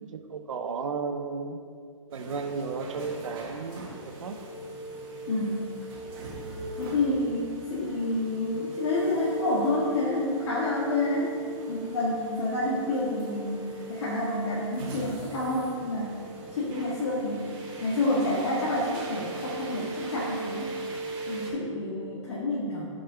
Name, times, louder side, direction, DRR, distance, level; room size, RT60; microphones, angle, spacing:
voice 1, 0.0-1.6 2.1-4.4, right 5 dB, 75° right, 6 dB, 0.9 m, -34 dB
sound 1, 2.1-21.5, right 2 dB, 45° right, 1.8 m, -38 dB
voice 2, 5.3-5.6 6.8-11.3 11.7-16.2 16.5-17.5 17.8-20.8 21.3-22.9, left 2 dB, 60° left, -8 dB, 1.8 m, -29 dB
6.8 x 5.3 x 5.7 m, 2.3 s
hypercardioid pair, 150°, 17 cm